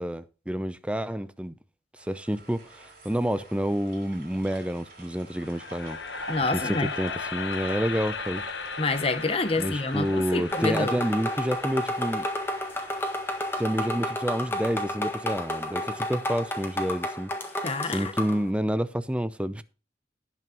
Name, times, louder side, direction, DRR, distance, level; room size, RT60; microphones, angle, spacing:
voice 1, 0.0-1.5 2.0-6.0 6.5-8.4 9.6-12.3 13.6-17.3 17.9-19.6, equal, 5° right, 0.5 m, -29 dB
sound 1, 2.0-15.2 15.6-15.7, right 2 dB, 50° right, 4.8 m, -46 dB
sound 2, 5.3-15.5, left 5 dB, 80° left, 1.1 m, -38 dB
voice 2, 6.3-6.9 8.8-11.0 17.6-18.1, left 3 dB, 35° left, 1.0 m, -27 dB
sound 3, 10.5-18.4, left 1 dB, 15° left, 1.5 m, -31 dB
18.0 x 6.0 x 2.9 m
head